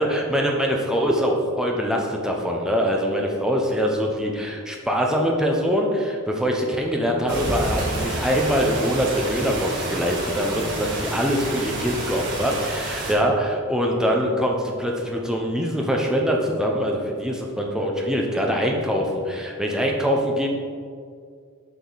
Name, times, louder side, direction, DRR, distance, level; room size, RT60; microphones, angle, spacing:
voice 1, 0.0-20.5, equal, 5° right, 0 dB, 0.7 m, -23 dB
sound 1, 6.7-12.2, right 1 dB, 30° right, 2.0 m, -37 dB
sound 2, 7.3-13.1, right 1 dB, 50° right, 1.8 m, -29 dB
8.2 x 5.2 x 4.0 m, 2.2 s
head